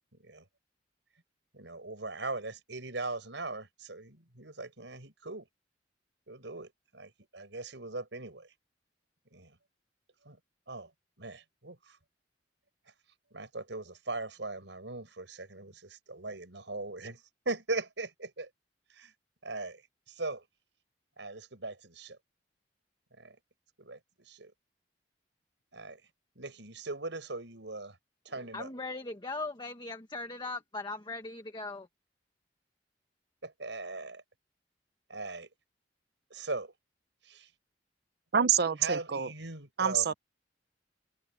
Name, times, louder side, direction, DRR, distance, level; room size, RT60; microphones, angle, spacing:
voice 1, 1.5-5.5 6.3-8.5 9.3-9.6 10.3-10.4 10.7-10.9 11.2-12.0 13.3-18.5 18.9-19.1 19.4-19.8 20.1-20.4 21.2-22.2 23.2-23.4 23.8-24.5 25.7-26.0 26.4-28.0 28.3-28.7 33.4-34.2 35.1-35.5 36.3-36.7 37.2-37.5 38.8-40.2, right 3 dB, 90° right, 5.3 m, -40 dB
voice 2, 28.5-31.9, left 3 dB, 25° left, 1.4 m, -39 dB
voice 3, 38.3-39.3 39.8-40.1, right 7 dB, 60° right, 0.7 m, -27 dB
head